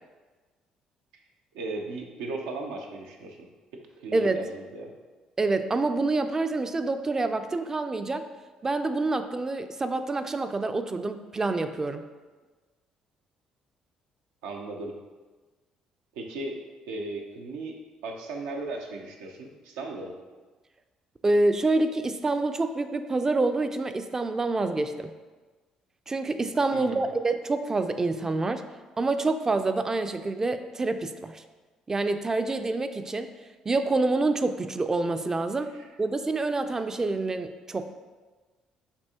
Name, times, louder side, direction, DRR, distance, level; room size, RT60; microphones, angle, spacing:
voice 1, 1.5-4.9 14.4-15.0 16.1-16.6 16.9-20.2 26.7-27.1 35.7-35.9, right 2 dB, 90° right, 1 dB, 0.6 m, -37 dB
voice 2, 4.1-4.4 5.4-8.2 8.6-12.1 21.2-25.1 26.1-28.6 29.0-31.4 31.9-33.3 33.7-35.7 36.0-37.8, right 2 dB, 25° right, 8 dB, 0.3 m, -27 dB
6.8 x 2.7 x 2.9 m, 1.3 s
supercardioid pair, 75°, 2 cm